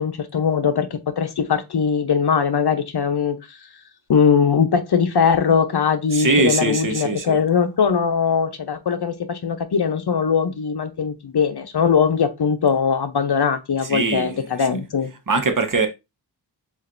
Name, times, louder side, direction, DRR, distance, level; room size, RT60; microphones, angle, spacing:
voice 1, 0.0-3.6 4.1-15.1, left 6 dB, 60° left, 0.8 m, -20 dB
voice 2, 6.1-7.4 13.8-14.3 15.3-15.9, right 3 dB, 45° right, 1.0 m, -21 dB
7.3 x 2.6 x 2.6 m
wide cardioid pair, 70°, 45 cm